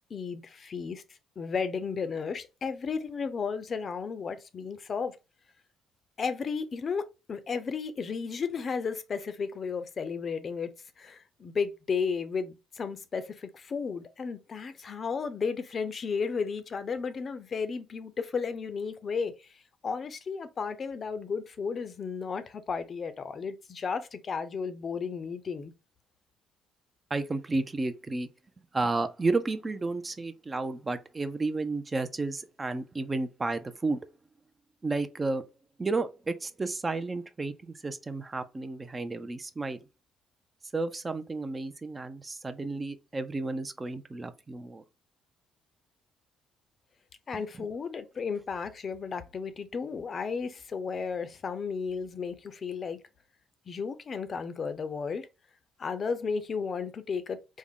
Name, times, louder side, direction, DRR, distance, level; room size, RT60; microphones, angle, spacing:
voice 1, 0.1-1.0 1.4-5.2 6.2-10.7 11.0-25.7 47.3-53.0 53.7-55.3 55.8-57.6, left 5 dB, 45° left, 0.5 m, -34 dB
voice 2, 27.1-28.3 28.7-34.0 34.8-35.5 35.8-39.8 40.7-44.8 47.3-47.4, right 3 dB, 25° right, 0.4 m, -32 dB
3.5 x 2.1 x 3.6 m
cardioid pair, 85°, 0 cm